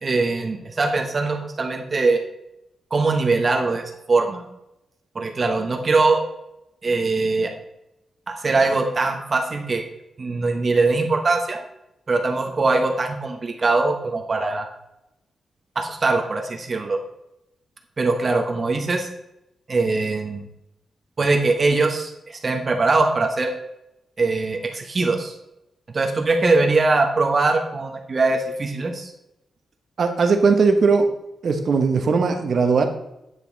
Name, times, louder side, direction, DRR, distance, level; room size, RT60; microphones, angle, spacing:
voice 1, 0.0-2.2 2.9-4.4 5.1-6.2 6.8-7.5 8.3-9.8 10.2-11.6 12.1-14.7 15.7-17.0 18.0-19.1 19.7-20.5 21.2-23.5 24.2-25.3 25.9-29.1, right 3 dB, 35° right, 3 dB, 1.2 m, -21 dB
voice 2, 30.0-31.1 31.4-32.8, right 4 dB, 55° right, 5 dB, 1.1 m, -18 dB
9.3 x 5.4 x 4.0 m, 0.87 s
wide cardioid pair, 130°, 0 cm